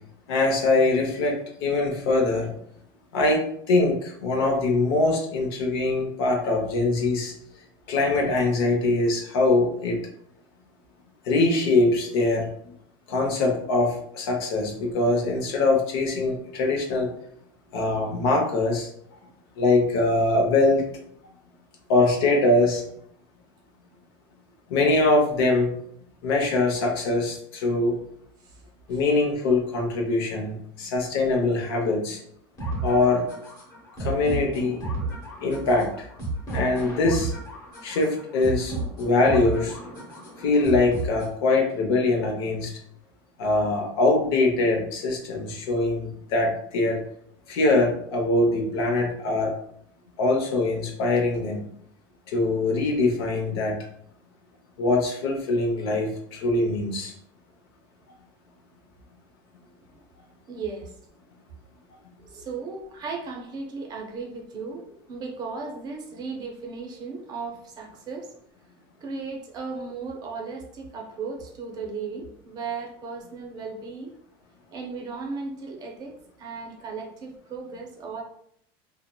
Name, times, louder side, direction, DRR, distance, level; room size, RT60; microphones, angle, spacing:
voice 1, 0.3-2.5 3.1-7.3 7.9-10.0 11.2-12.5 13.1-17.1 17.7-18.9 19.6-20.8 21.9-22.8 24.7-25.8 26.2-28.0 28.9-32.2 32.8-33.3 34.0-34.8 35.4-36.1 36.5-37.3 37.8-39.8 40.4-42.7 43.4-47.0 47.5-49.5 50.2-51.6 52.3-53.8 54.8-57.1, left 2 dB, 80° left, 1 dB, 0.7 m, -23 dB
sound 1, 32.6-41.6, right 2 dB, 30° left, 1.0 m, -33 dB
voice 2, 60.5-61.0 62.2-68.3 69.0-74.1 74.7-78.2, right 4 dB, 35° right, 1 dB, 0.5 m, -36 dB
2.7 x 2.0 x 2.2 m, 0.68 s
supercardioid pair, 130°, 12 cm